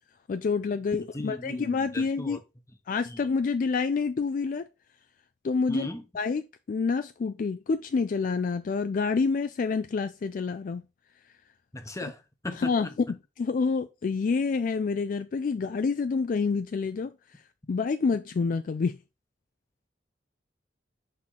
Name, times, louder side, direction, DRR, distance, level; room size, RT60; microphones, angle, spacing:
voice 1, 0.3-2.4 2.9-4.7 5.4-5.9 6.1-10.8 12.0-12.1 12.6-12.9 13.4-17.1 17.7-19.0, left 4 dB, 50° left, 0.3 m, -28 dB
voice 2, 1.1-2.4 3.1-3.2 5.7-6.0 11.7-12.7, left 1 dB, 15° left, 0.8 m, -37 dB
5.7 x 3.7 x 4.6 m
head